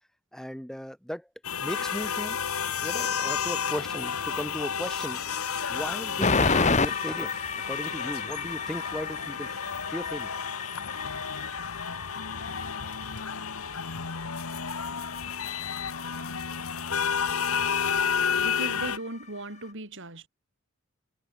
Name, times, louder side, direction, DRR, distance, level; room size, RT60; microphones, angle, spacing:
voice 1, 0.3-1.3 1.6-2.4 2.8-5.2 5.7-7.3 7.7-9.5 9.9-10.3, equal, ahead, 3.2 m, -36 dB
sound 1, 1.4-19.0, left 7 dB, 80° left, 1.6 m, -31 dB
sound 2, 6.2-19.7, left 4 dB, 35° left, 2.1 m, -33 dB
voice 2, 18.4-20.3, right 2 dB, 60° right, 6.7 m, -37 dB
head